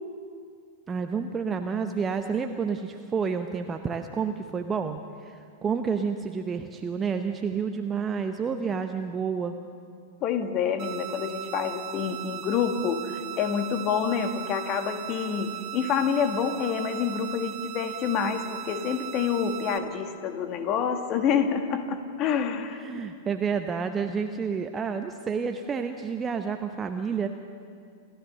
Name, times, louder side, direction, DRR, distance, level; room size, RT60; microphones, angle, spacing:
voice 1, 0.9-9.5 22.8-27.3, right 6 dB, 20° right, 6 dB, 0.8 m, -29 dB
voice 2, 10.2-23.0, left 7 dB, 35° left, 7 dB, 1.8 m, -27 dB
sound 1, 10.8-19.8, right 12 dB, 35° right, 2.1 m, -38 dB
28.0 x 14.0 x 6.7 m, 2.4 s
figure-of-eight pair, 95°, 0 cm